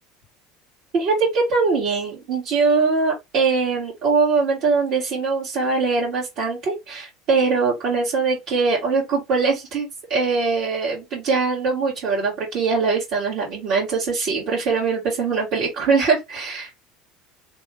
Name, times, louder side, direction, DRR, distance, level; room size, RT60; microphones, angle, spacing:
voice 1, 0.9-16.7, right 4 dB, 60° right, 1.8 m, -22 dB
3.5 x 3.1 x 3.4 m
hypercardioid pair, 90°, 0 cm